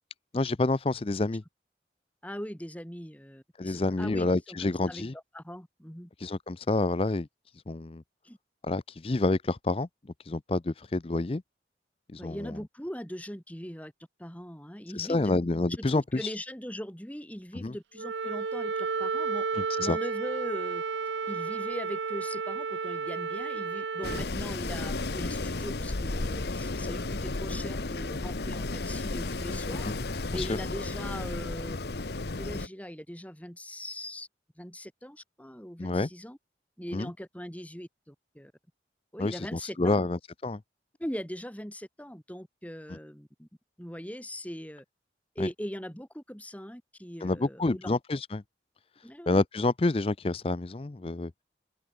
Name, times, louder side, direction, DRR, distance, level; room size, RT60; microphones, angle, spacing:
voice 1, 0.3-1.4 3.6-5.1 6.2-7.3 7.7-8.0 8.6-9.9 10.2-11.4 12.1-12.5 14.9-16.3 17.5-17.7 19.5-20.0 29.8-29.9 30.3-30.5 35.8-36.1 36.9-37.1 39.2-40.6 45.4-45.5 47.2-48.4 49.3-51.3, left 2 dB, 30° left, 0.5 m, -28 dB
voice 2, 2.2-6.1 8.2-8.4 12.2-13.9 14.2-15.3 15.8-19.4 19.8-20.8 21.3-29.9 30.3-31.8 32.4-34.3 34.6-36.4 36.8-38.5 39.1-40.0 41.0-43.5 43.8-44.8 45.4-47.9 49.0-49.4, equal, 10° left, 3.4 m, -40 dB
Wind instrument woodwind instrument, 18.0-24.3, right 5 dB, 80° right, 0.7 m, -32 dB
Wind, 24.0-32.7, left 2 dB, 65° left, 1.1 m, -33 dB
open air
head